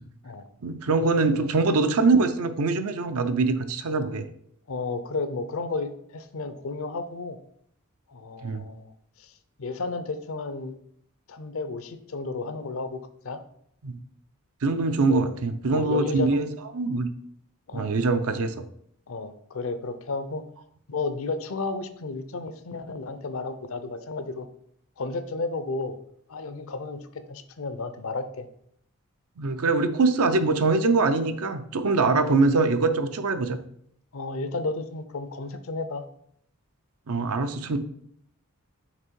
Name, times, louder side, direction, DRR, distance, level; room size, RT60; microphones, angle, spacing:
voice 1, 0.6-4.2 8.4-8.6 13.8-14.0 14.6-16.5 16.7-17.1 17.7-18.5 29.4-33.6 37.1-37.8, right 3 dB, 75° right, 9 dB, 0.6 m, -23 dB
voice 2, 4.7-7.4 8.1-9.3 9.6-10.7 11.3-13.0 13.2-13.4 15.1-15.3 15.7-16.4 17.7-18.0 19.1-20.4 20.9-24.5 25.0-26.0 26.3-28.5 32.0-32.4 34.1-36.1, left 3 dB, 65° left, 11 dB, 0.6 m, -32 dB
5.9 x 3.5 x 4.6 m, 0.68 s
head